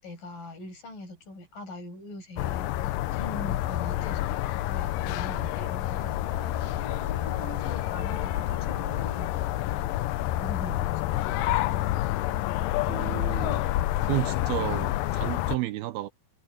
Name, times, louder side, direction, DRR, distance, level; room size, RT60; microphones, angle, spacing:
voice 1, 0.0-6.1 7.4-9.8 10.4-10.9, left 2 dB, 55° left, 7.6 m, -42 dB
sound 1, 2.4-15.6, left 15 dB, 80° left, 2.0 m, -28 dB
sound 2, 5.9-10.4, left 2 dB, 15° left, 1.3 m, -46 dB
voice 2, 12.9-13.6 14.0-16.1, right 16 dB, 80° right, 2.6 m, -32 dB
omnidirectional pair, 4.7 m